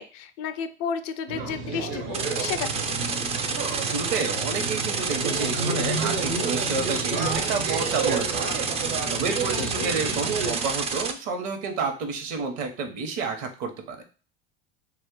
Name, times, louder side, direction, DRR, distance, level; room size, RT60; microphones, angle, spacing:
voice 1, 0.0-2.8 9.6-9.9, left 7 dB, 55° left, 11 dB, 0.4 m, -32 dB
sound 1, 1.3-10.5, right 4 dB, 85° right, 1.2 m, -30 dB
sound 2, 2.1-11.1, right 5 dB, 20° right, 0.3 m, -29 dB
voice 2, 3.8-8.5 9.1-14.0, right 4 dB, 60° right, 5 dB, 0.9 m, -30 dB
2.5 x 2.4 x 3.7 m, 0.37 s
hypercardioid pair, 90°, 31 cm